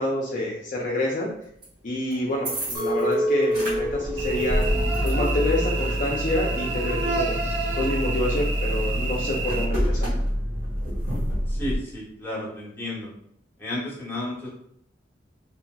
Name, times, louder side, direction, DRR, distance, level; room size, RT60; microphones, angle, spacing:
voice 1, 0.0-1.3 1.8-4.6 5.0-7.3 7.8-10.1, left 1 dB, 45° left, -3 dB, 0.4 m, -27 dB
sound 1, 1.6-1.7 2.1-3.1 3.4-11.8, equal, 55° right, 1.2 m, -27 dB
Chink clink, 2.7-7.9, equal, 20° right, 0.4 m, -29 dB
Cricket / Buzz, 4.2-9.6, right 3 dB, 75° right, 0.5 m, -30 dB
voice 2, 11.5-13.1 13.6-14.5, left 1 dB, 10° left, -7 dB, 0.9 m, -32 dB
2.8 x 2.8 x 2.3 m, 0.68 s
head